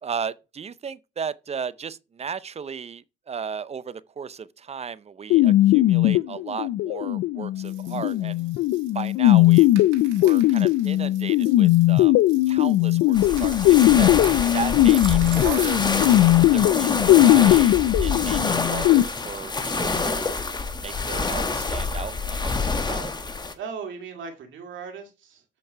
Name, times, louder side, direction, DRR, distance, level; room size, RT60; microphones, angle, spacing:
voice 1, 0.0-8.4 8.9-9.7 10.2-12.2 12.5-14.1 14.5-15.8 16.3-20.4 20.8-23.1, right 6 dB, 30° right, 0.5 m, -35 dB
sound 1, 5.3-19.0, left 15 dB, 85° left, 0.5 m, -19 dB
sound 2, 7.6-16.4 16.8-16.9, right 11 dB, 90° right, 1.5 m, -43 dB
sound 3, 13.1-23.5, left 3 dB, 20° left, 1.2 m, -27 dB
voice 2, 23.6-25.4, right 6 dB, 70° right, 2.3 m, -37 dB
8.0 x 5.3 x 4.6 m
cardioid pair, 90°, 20 cm